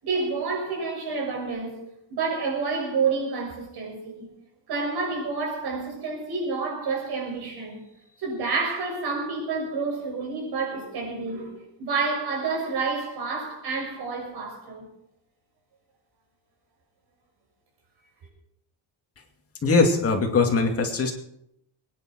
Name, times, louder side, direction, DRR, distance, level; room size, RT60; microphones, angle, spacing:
voice 1, 0.0-4.3 4.7-7.8 8.2-14.9, right 4 dB, 60° right, 6.3 m, -29 dB
voice 2, 19.6-21.1, left 4 dB, 30° left, 2.4 m, -21 dB
22.5 x 10.5 x 4.5 m
cardioid pair, 165°, 44 cm